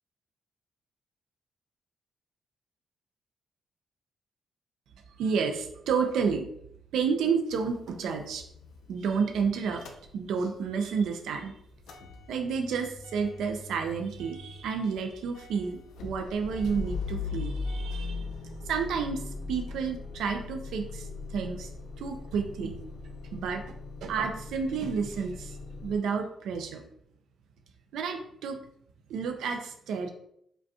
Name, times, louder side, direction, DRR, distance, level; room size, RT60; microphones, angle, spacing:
voice 1, 5.2-6.5 6.9-8.4 8.9-9.9 10.1-11.6 12.3-18.3 18.7-21.7 22.0-22.8 23.3-23.6 24.0-26.8 27.9-28.6 29.1-30.1, right 5 dB, 85° right, 4 dB, 0.5 m, -30 dB
Motor vehicle (road) / Engine starting / Idling, 7.5-10.7 11.0-26.0, left 4 dB, 80° left, 0.5 m, -40 dB
5.0 x 2.3 x 2.8 m, 0.71 s
cardioid pair, 160°, 0 cm